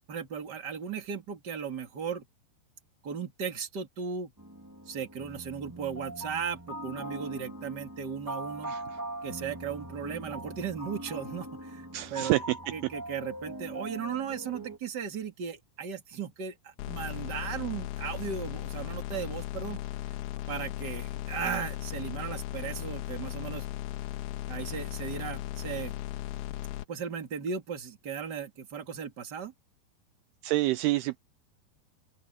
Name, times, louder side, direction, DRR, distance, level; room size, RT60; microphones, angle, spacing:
voice 1, 0.1-2.2 3.0-4.3 4.9-8.7 9.2-12.3 12.7-19.8 20.5-23.7 24.5-25.9 26.9-29.5, right 7 dB, 30° right, 2.5 m, -36 dB
sound 1, 4.4-14.8, right 1 dB, 5° right, 1.7 m, -41 dB
voice 2, 11.9-12.9 30.4-31.2, right 18 dB, 80° right, 2.4 m, -28 dB
sound 2, 16.8-26.8, left 15 dB, 85° left, 2.9 m, -37 dB
open air
omnidirectional pair, 4.8 m